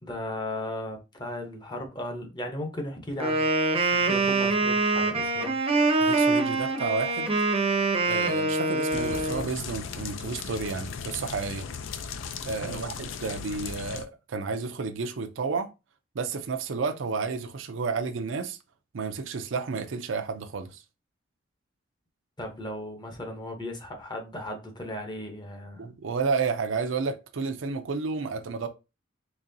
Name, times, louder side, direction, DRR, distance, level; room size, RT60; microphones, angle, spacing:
voice 1, 0.0-3.4 3.9-5.5 12.6-13.0 22.4-25.9, left 1 dB, 25° left, 0.8 m, -36 dB
Wind instrument woodwind instrument, 3.2-9.5, right 3 dB, 30° right, 0.6 m, -24 dB
voice 2, 6.0-7.4 8.1-11.7 12.5-15.7 16.1-18.6 18.9-20.8 25.8-28.7, right 4 dB, 80° right, 0.5 m, -31 dB
sound 1, 8.9-14.1, left 6 dB, 75° left, 0.4 m, -37 dB
4.0 x 3.0 x 2.6 m
head